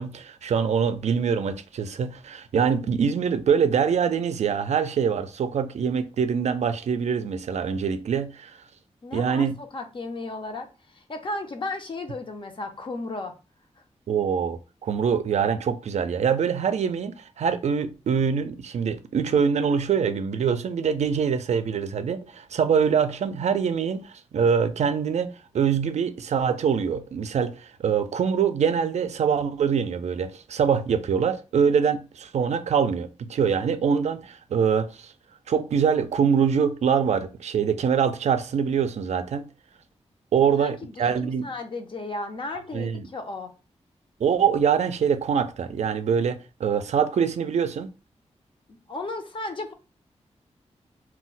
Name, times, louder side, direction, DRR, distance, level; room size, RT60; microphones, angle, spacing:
voice 1, 0.0-8.6 9.1-9.5 14.1-35.1 35.5-39.5 40.3-41.5 42.7-43.1 44.2-47.9, right 7 dB, 70° right, 0.4 m, -24 dB
voice 2, 9.0-13.3 40.6-43.5 48.7-49.7, left 2 dB, 45° left, 0.6 m, -34 dB
2.2 x 2.1 x 3.8 m
wide cardioid pair, 105°, 12 cm